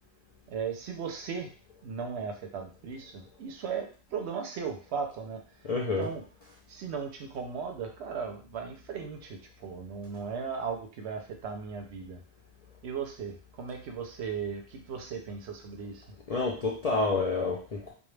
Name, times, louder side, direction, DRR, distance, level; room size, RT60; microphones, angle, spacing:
voice 1, 0.5-1.5 1.8-5.4 6.0-6.2 6.7-12.2 12.8-16.1, right 6 dB, 85° right, 4 dB, 0.9 m, -37 dB
voice 2, 5.6-6.1 16.3-17.9, left 3 dB, 55° left, -2 dB, 0.4 m, -29 dB
2.2 x 2.2 x 3.1 m, 0.39 s
omnidirectional pair, 1.1 m